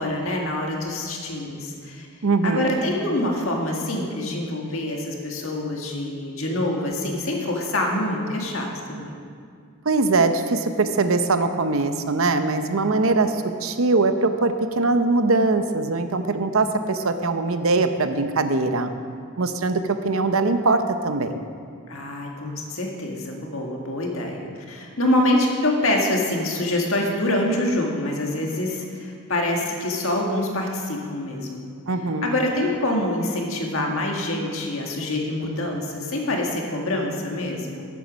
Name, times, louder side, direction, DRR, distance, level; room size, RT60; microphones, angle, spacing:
voice 1, 0.0-2.1 2.4-9.2 21.9-31.7 32.2-37.9, left 1 dB, 70° left, 0 dB, 1.8 m, -25 dB
voice 2, 2.2-2.7 9.8-18.9 19.4-21.4 31.9-32.3, right 3 dB, 70° right, 9 dB, 0.7 m, -22 dB
13.0 x 8.3 x 5.3 m, 2.2 s
head